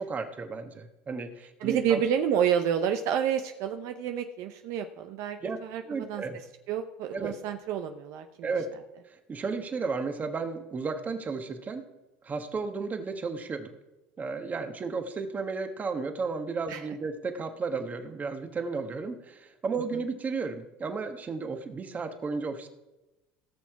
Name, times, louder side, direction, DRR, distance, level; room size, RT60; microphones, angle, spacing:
voice 1, 0.0-2.0 5.4-5.6 5.9-6.4 7.1-7.3 8.4-8.7 9.1-11.8 12.2-13.7 14.2-22.7, right 4 dB, 30° right, 7 dB, 1.4 m, -33 dB
voice 2, 1.6-5.8 6.1-6.2 6.7-8.5 16.7-16.9, right 8 dB, 60° right, 7 dB, 0.7 m, -29 dB
17.0 x 6.2 x 4.7 m, 1.0 s
supercardioid pair, 100°, 6 cm